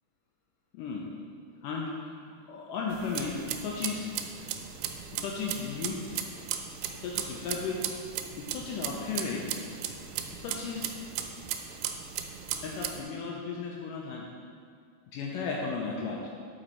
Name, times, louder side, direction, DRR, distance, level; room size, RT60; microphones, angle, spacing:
voice 1, 0.7-1.0 1.6-2.1 2.5-4.1 5.2-6.2 6.8-7.9 8.4-9.6 10.3-11.0 12.6-14.3 15.1-16.3, left 4 dB, 80° left, -2 dB, 2.0 m, -35 dB
sound 1, 2.9-13.0, right 9 dB, 90° right, 2.4 m, -37 dB
7.8 x 5.3 x 4.2 m, 2.2 s
omnidirectional pair, 4.2 m